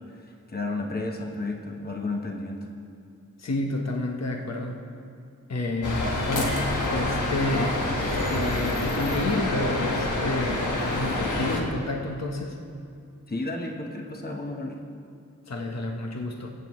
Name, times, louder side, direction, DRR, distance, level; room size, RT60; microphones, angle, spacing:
voice 1, 0.2-2.7 13.3-14.8, left 2 dB, 30° left, 1 dB, 1.1 m, -32 dB
voice 2, 3.4-4.8 5.5-7.9 8.3-12.6 15.5-16.5, left 2 dB, 60° left, 1 dB, 1.1 m, -30 dB
sound 1, 5.8-11.6, left 1 dB, 80° left, 1.4 m, -27 dB
22.5 x 8.0 x 3.1 m, 2.4 s
wide cardioid pair, 70°, 30 cm